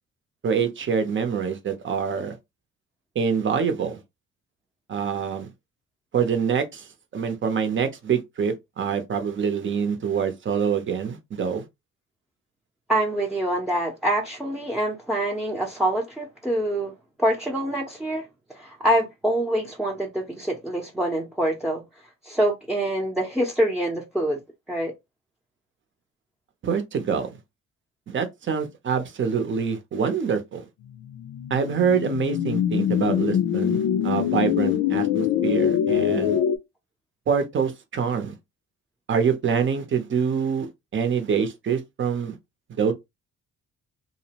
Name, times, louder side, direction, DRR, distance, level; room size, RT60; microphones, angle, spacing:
voice 1, 0.4-2.3 3.1-4.0 4.9-5.5 6.1-11.6 26.6-27.3 28.1-30.6 31.5-36.4 37.3-38.3 39.1-42.3 42.8-42.9, right 6 dB, 40° right, 0.7 m, -25 dB
voice 2, 12.9-16.9 17.2-21.8 22.2-24.4 24.7-24.9, right 1 dB, ahead, 0.7 m, -25 dB
sound 1, 31.0-36.6, left 10 dB, 80° left, 0.4 m, -24 dB
2.6 x 2.0 x 2.8 m
cardioid pair, 90°, 30 cm